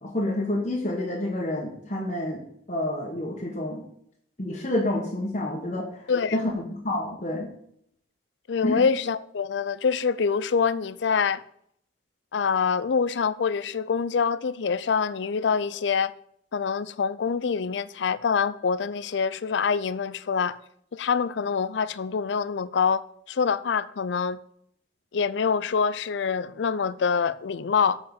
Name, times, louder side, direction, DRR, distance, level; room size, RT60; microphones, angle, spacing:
voice 1, 0.0-2.4 2.7-3.8 4.4-5.8 6.3-6.4 6.7-7.5 8.6-8.8, left 1 dB, 40° left, 1.5 m, -28 dB
voice 2, 6.1-6.4 8.5-11.4 12.3-16.1 16.5-20.6 20.9-23.0 23.3-24.4 25.1-28.0, left 6 dB, 75° left, 0.4 m, -25 dB
7.3 x 5.0 x 7.1 m
head